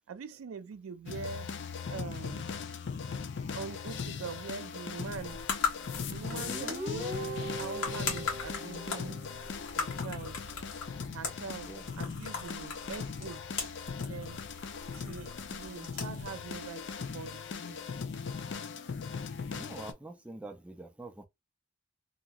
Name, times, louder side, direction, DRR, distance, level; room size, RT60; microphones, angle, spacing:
voice 1, 0.1-1.5 1.9-2.5 3.6-5.4 6.1-7.2 7.6-9.2 9.8-10.4 11.1-13.4 14.0-14.4 14.9-17.9, right 5 dB, 85° right, 0.4 m, -43 dB
sound 1, 1.1-19.9, left 5 dB, 60° left, 0.4 m, -39 dB
sound 2, 5.0-17.5, left 5 dB, 85° left, 1.4 m, -40 dB
Guitar, 6.3-9.8, right 1 dB, 50° right, 0.9 m, -40 dB
voice 2, 19.5-21.2, right 2 dB, 5° right, 0.4 m, -46 dB
2.9 x 2.8 x 2.3 m
head